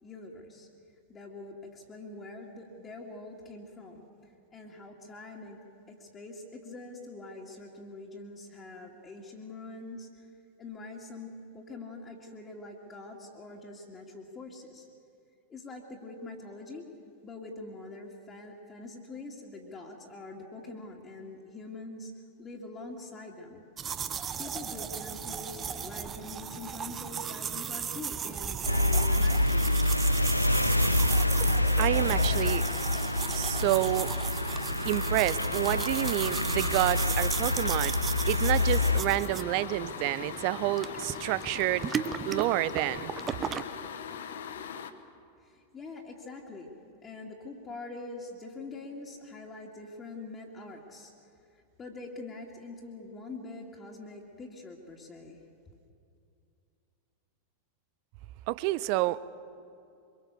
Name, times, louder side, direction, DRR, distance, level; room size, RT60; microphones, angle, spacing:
voice 1, 0.0-0.7 1.1-4.0 4.5-5.6 5.9-10.1 10.6-14.9 15.5-16.9 17.2-22.1 22.4-23.6 24.4-30.3 45.4-46.7 47.0-51.1 51.8-55.4, left 2 dB, 20° left, 2.7 m, -44 dB
sound 1, 23.8-43.6, right 7 dB, 25° right, 1.0 m, -37 dB
sound 2, 27.7-44.9, left 7 dB, 60° left, 1.3 m, -42 dB
sound 3, 28.7-39.0, left 1 dB, 90° left, 0.6 m, -27 dB
voice 2, 31.8-32.6 33.3-34.1 34.8-37.9 38.3-41.9 42.3-43.1 58.5-59.2, right 18 dB, 45° right, 0.7 m, -29 dB
24.5 x 23.5 x 7.1 m
figure-of-eight pair, 90°, 0 cm